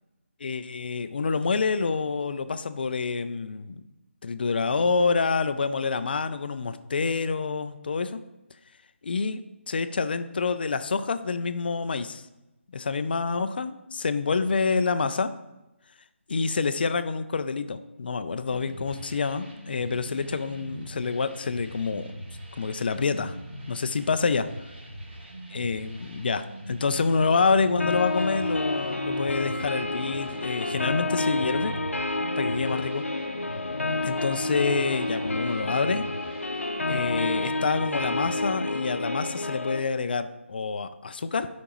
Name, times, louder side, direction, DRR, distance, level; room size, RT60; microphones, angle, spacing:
voice 1, 0.4-3.8 4.2-8.2 9.0-12.3 12.7-15.3 16.3-22.1 22.6-23.3 23.7-24.5 25.5-31.7 32.4-33.0 34.0-36.0 36.9-41.5, left 4 dB, 50° left, 11 dB, 0.5 m, -27 dB
sound 1, 18.5-38.4, right 1 dB, 55° right, 2.4 m, -41 dB
sound 2, 27.8-39.8, left 2 dB, 85° left, 0.8 m, -29 dB
9.8 x 5.2 x 3.0 m, 0.95 s
figure-of-eight pair, 155°, 7 cm